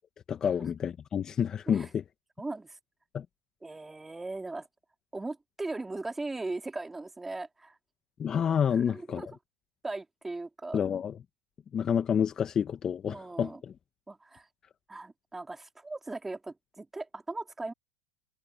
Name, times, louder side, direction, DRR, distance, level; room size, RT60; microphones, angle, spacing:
voice 1, 0.3-2.0 3.1-3.2 8.2-9.3 10.7-11.1 11.7-13.7, left 8 dB, 30° left, 1.3 m, -29 dB
voice 2, 2.4-2.8 3.6-4.7 5.1-7.8 8.7-9.3 9.8-10.8 13.1-13.6 14.1-14.5 14.9-17.7, right 2 dB, 10° right, 3.6 m, -38 dB
hypercardioid pair, 110°, 2 cm